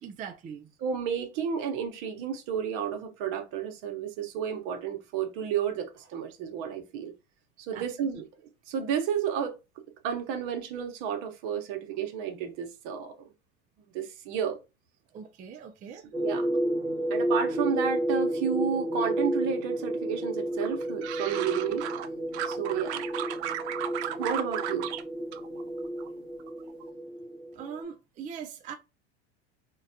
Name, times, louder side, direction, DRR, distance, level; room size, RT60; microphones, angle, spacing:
voice 1, 0.0-0.7 7.7-7.8 8.1-8.2 15.1-16.0 27.5-28.7, right 7 dB, 25° right, 0.4 m, -41 dB
voice 2, 0.8-7.1 7.6-8.3 8.7-9.6 10.0-13.1 13.9-14.6 16.2-16.6 17.1-21.8 22.4-23.0 24.2-24.9, right 7 dB, 60° right, 0.9 m, -31 dB
sound 1, 16.1-27.8, right 1 dB, 10° right, 0.8 m, -31 dB
sound 2, 20.6-22.1 22.3-25.0 25.3-26.1 26.4-26.8, right 11 dB, 90° right, 0.5 m, -35 dB
3.8 x 2.2 x 2.7 m
supercardioid pair, 110°, 33 cm